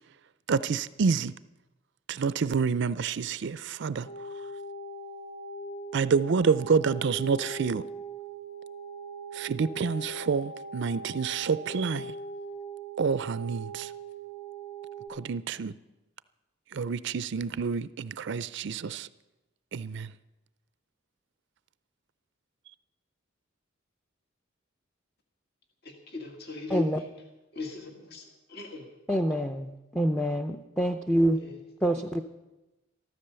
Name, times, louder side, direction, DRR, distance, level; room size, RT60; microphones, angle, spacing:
voice 1, 0.5-1.3 2.1-4.1 5.9-7.8 9.3-12.1 13.0-13.9 15.1-15.7 16.7-19.1 19.7-20.1, right 5 dB, 60° right, 16 dB, 0.4 m, -28 dB
sound 1, 4.0-15.1, right 2 dB, 75° left, 2.4 m, -41 dB
voice 2, 26.1-26.9 27.5-28.2 28.5-28.8 31.4-31.5, left 3 dB, 55° left, 2 dB, 1.9 m, -36 dB
voice 3, 26.7-27.0 29.1-31.4 31.8-32.2, right 1 dB, 5° left, 5 dB, 0.5 m, -26 dB
13.5 x 13.0 x 6.8 m, 1.0 s
head